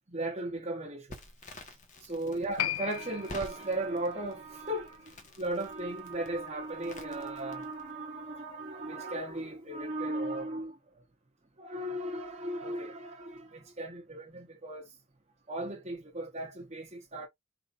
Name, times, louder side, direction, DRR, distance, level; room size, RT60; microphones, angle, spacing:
voice 1, 0.1-1.2 1.5-10.8 11.6-15.0 15.5-17.3, right 1 dB, 30° right, 1.1 m, -36 dB
Crackle, 1.1-7.9, left 1 dB, 35° left, 1.2 m, -50 dB
Piano, 2.6-9.5 9.8-9.9, left 12 dB, 85° left, 0.4 m, -41 dB
4.8 x 4.0 x 2.5 m
head